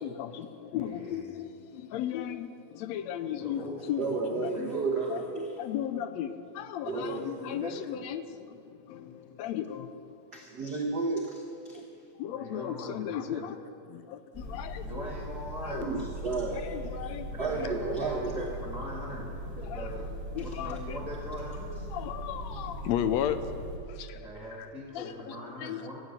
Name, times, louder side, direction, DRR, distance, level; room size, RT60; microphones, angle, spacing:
voice 1, 0.0-3.6 3.9-4.5 5.1-10.1 11.7-13.6 13.9-14.9 15.6-15.9 16.6-17.3 18.0-18.1 19.6-19.9 20.4-21.0 21.9-23.4 23.9-24.3 24.6-24.7 24.9-25.8, left 10 dB, 80° left, 11 dB, 1.7 m, -35 dB
voice 2, 0.7-1.4 3.3-5.2 6.8-7.8 12.3-13.5 14.8-16.1 17.3-19.3 19.5-20.1 20.4-21.9 24.1-26.0, equal, ahead, -3 dB, 1.8 m, -41 dB
voice 3, 4.0-5.5 6.8-7.3 10.3-11.8 15.8-16.7 17.0-18.4, right 4 dB, 55° right, 0 dB, 1.1 m, -32 dB
sound 1, 14.3-23.8, equal, 20° left, 2.0 m, -39 dB
13.5 x 8.2 x 9.5 m, 2.5 s
omnidirectional pair, 3.3 m